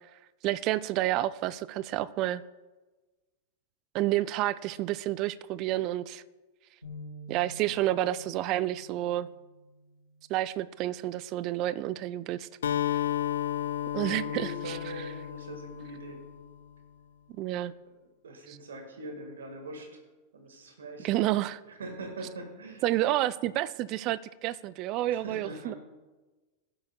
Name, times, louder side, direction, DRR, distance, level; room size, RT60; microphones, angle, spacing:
voice 1, 0.4-2.4 3.9-6.2 7.3-9.3 10.3-12.5 13.9-14.8 17.4-17.7 21.0-21.6 22.8-25.7, right 15 dB, 40° right, 18 dB, 0.3 m, -29 dB
sound 1, 6.8-13.1, equal, 90° left, 3.0 m, -50 dB
Acoustic guitar, 12.6-16.5, left 11 dB, 65° left, 0.4 m, -32 dB
voice 2, 14.0-16.2 18.2-20.0 20.3-21.3 21.7-22.9 25.0-25.8, right 1 dB, 65° right, 4 dB, 1.7 m, -42 dB
16.0 x 7.9 x 2.3 m, 1.2 s
figure-of-eight pair, 90°, 0 cm